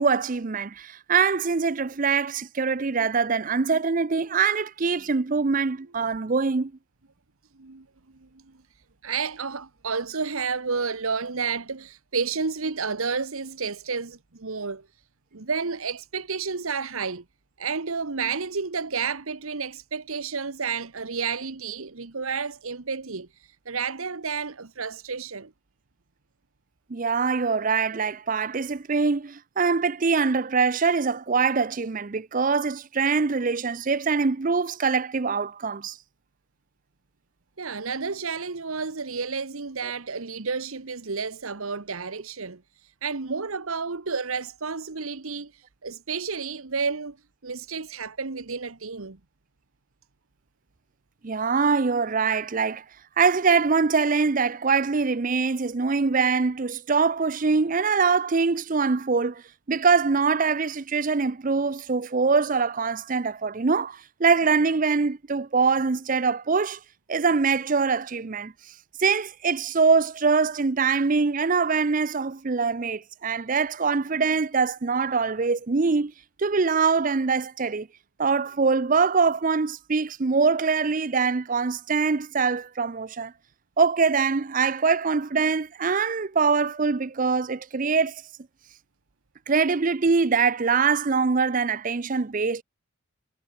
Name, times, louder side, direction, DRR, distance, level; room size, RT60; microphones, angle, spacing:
voice 1, 0.0-6.7 26.9-36.0 51.2-52.8 53.2-59.4 59.7-66.8 67.1-68.5 69.0-76.1 76.4-77.9 78.2-83.3 83.8-88.2 89.5-92.6, right 5 dB, 40° right, 0.5 m, -23 dB
voice 2, 9.0-14.8 15.3-17.2 17.6-23.3 23.7-25.5 37.6-42.6 43.0-47.2 47.4-49.2, right 5 dB, 75° right, 1.2 m, -31 dB
head